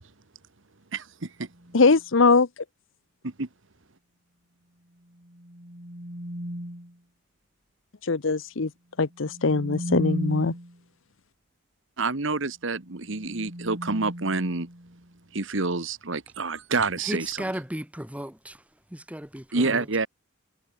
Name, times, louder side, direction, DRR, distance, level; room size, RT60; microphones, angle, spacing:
voice 1, 0.9-1.5 3.2-3.5 12.0-14.7 15.3-17.5 19.5-20.1, right 3 dB, 65° right, 1.5 m, -28 dB
sound 1, 1.5-2.0 5.1-7.0 9.1-10.8 12.8-15.1, equal, 45° right, 5.6 m, -36 dB
voice 2, 1.7-2.5 8.0-8.7 9.0-10.5, left 4 dB, 65° left, 0.8 m, -21 dB
voice 3, 17.1-18.6 18.9-19.8, equal, 5° right, 3.0 m, -35 dB
head